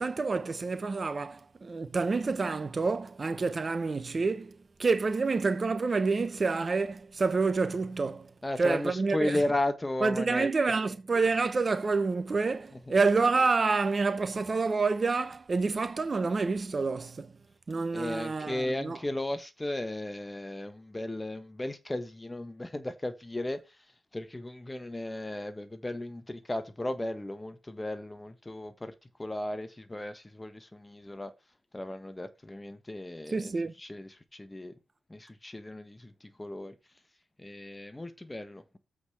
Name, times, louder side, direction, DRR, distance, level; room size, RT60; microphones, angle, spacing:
voice 1, 0.0-8.3 8.6-9.4 10.0-17.3 17.7-19.0 33.3-33.7, right 4 dB, 40° right, 1.2 m, -28 dB
voice 2, 8.4-10.5 12.9-13.0 17.9-23.8 24.1-28.9 29.2-31.3 31.7-33.5 33.8-34.7 35.1-36.7 37.4-38.8, left 1 dB, 20° left, 1.4 m, -35 dB
8.0 x 4.9 x 6.4 m
supercardioid pair, 50°, 0 cm